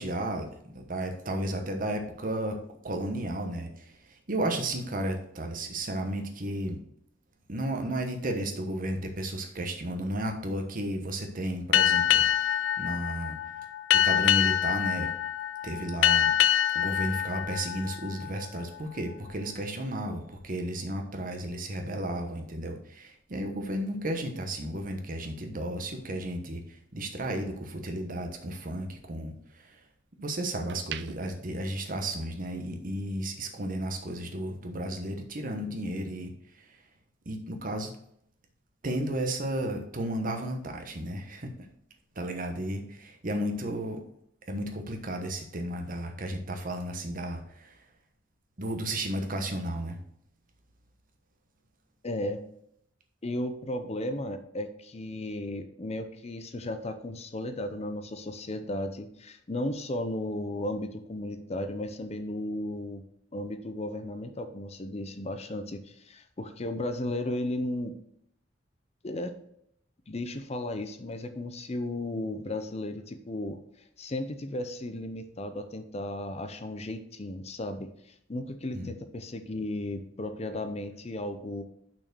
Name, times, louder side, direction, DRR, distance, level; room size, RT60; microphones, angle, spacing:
voice 1, 0.0-6.8 7.5-13.4 13.9-15.1 15.6-16.3 16.7-29.8 30.2-36.8 37.2-38.0 38.8-41.5 42.1-44.0 44.5-47.8 48.6-50.0 78.7-78.9, right 1 dB, 50° right, 4 dB, 1.1 m, -33 dB
Boat Water vehicle, 11.7-18.8, left 10 dB, 85° left, 0.4 m, -26 dB
sound 1, 25.9-28.2 28.6-30.0 30.5-32.6 32.9-33.2, right 9 dB, 65° right, 0.4 m, -45 dB
voice 2, 52.0-52.4 53.2-63.0 63.3-67.9 69.0-69.3 70.1-73.6 74.0-77.9 78.3-81.6, left 1 dB, 35° left, 9 dB, 0.6 m, -35 dB
6.0 x 4.5 x 6.1 m, 0.71 s
head